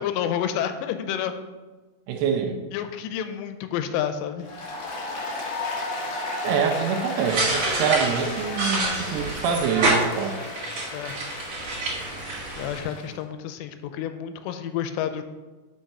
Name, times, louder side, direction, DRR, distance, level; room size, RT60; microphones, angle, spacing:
voice 1, 0.0-1.4 2.7-4.5 10.9-11.1 12.6-15.2, left 9 dB, 90° left, 9 dB, 2.8 m, -29 dB
voice 2, 2.1-2.6 6.4-10.4, right 6 dB, 80° right, 4 dB, 2.6 m, -25 dB
Applause, 4.4-13.1, left 2 dB, 60° left, 1.8 m, -34 dB
sound 1, 7.2-12.8, right 2 dB, 50° right, 2.3 m, -27 dB
6.3 x 5.7 x 5.4 m, 1.2 s
omnidirectional pair, 5.0 m